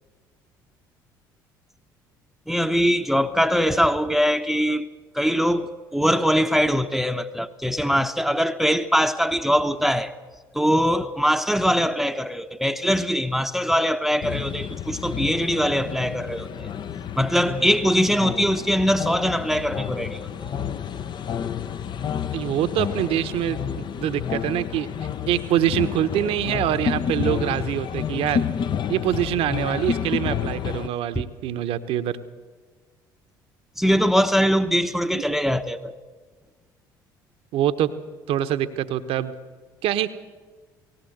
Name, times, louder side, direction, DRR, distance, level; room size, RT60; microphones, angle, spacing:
voice 1, 2.5-4.9 5.1-10.1 10.5-16.7 17.2-20.5 31.2-31.3 33.8-36.0, equal, ahead, 0.9 m, -22 dB
sound 1, 14.2-30.9, left 8 dB, 45° left, 0.8 m, -30 dB
voice 2, 22.3-24.9 25.3-28.4 28.9-32.2 35.1-35.2 37.5-37.9 38.3-39.3 39.8-40.1, right 11 dB, 60° right, 1.1 m, -24 dB
19.0 x 18.0 x 8.0 m
hypercardioid pair, 55°, 11 cm